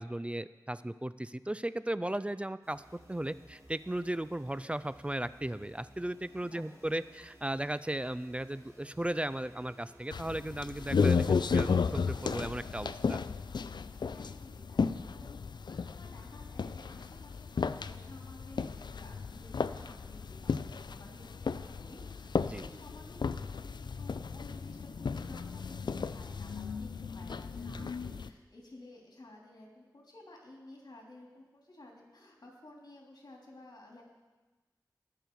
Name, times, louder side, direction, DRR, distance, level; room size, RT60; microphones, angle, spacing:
voice 1, 0.0-13.2 22.5-22.6 27.7-27.9, right 1 dB, 15° right, 15 dB, 0.3 m, -36 dB
sound 1, 2.6-12.6, equal, 40° right, 4.2 m, -58 dB
voice 2, 6.4-6.8 14.1-34.0, left 1 dB, 65° left, -1 dB, 3.0 m, -54 dB
sound 2, 10.1-28.3, left 5 dB, 80° left, 0.4 m, -34 dB
20.5 x 6.8 x 4.6 m, 1.2 s
wide cardioid pair, 75°, 7 cm